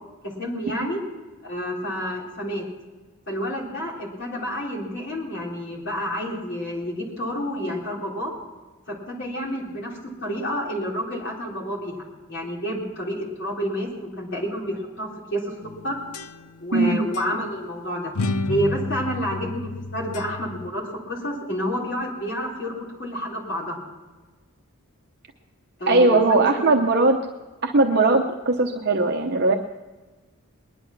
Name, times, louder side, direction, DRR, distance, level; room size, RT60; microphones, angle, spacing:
voice 1, 0.2-1.0 1.4-2.7 3.3-8.3 8.9-13.9 14.2-15.5 15.8-16.0 16.6-18.1 18.5-23.8 25.8-26.8, equal, 50° left, -3 dB, 4.0 m, -29 dB
sound 1, 15.6-16.8 17.1-17.3 18.1-20.7, left 2 dB, 90° left, 0.7 m, -31 dB
voice 2, 25.9-27.2 27.6-29.5, right 3 dB, 45° right, 3 dB, 0.8 m, -19 dB
20.0 x 11.0 x 6.0 m, 1.3 s
head